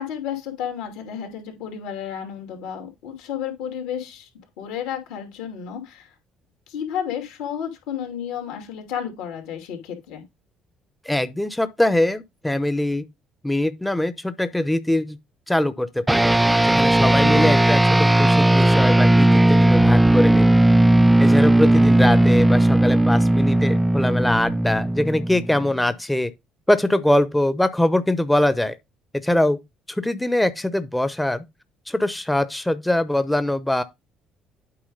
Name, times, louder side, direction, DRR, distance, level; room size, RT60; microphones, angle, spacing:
voice 1, 0.0-4.3 4.6-6.1 6.7-10.2 21.7-21.9, left 8 dB, 75° left, 2.7 m, -32 dB
voice 2, 11.0-13.1 13.4-15.2 15.5-16.3 16.6-17.8 18.2-20.5 21.2-26.3 26.7-28.7 29.2-29.6 29.9-31.4 31.9-33.8, left 1 dB, 10° left, 0.8 m, -22 dB
sound 1, 16.1-25.8, right 1 dB, 10° right, 0.4 m, -16 dB
8.7 x 4.9 x 3.9 m
hypercardioid pair, 55°, 0 cm